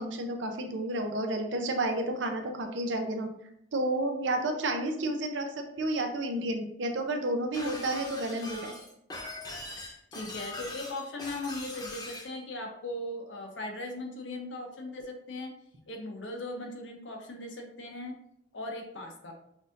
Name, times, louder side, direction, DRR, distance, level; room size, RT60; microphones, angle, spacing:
voice 1, 0.0-3.3 3.7-8.7, right 1 dB, 90° right, 4 dB, 0.7 m, -31 dB
Shatter, 7.5-12.3, left 2 dB, 20° left, 0.8 m, -42 dB
voice 2, 10.1-15.5 15.9-18.2 18.5-19.3, left 2 dB, 85° left, 2 dB, 0.9 m, -38 dB
6.0 x 2.7 x 2.6 m, 0.75 s
head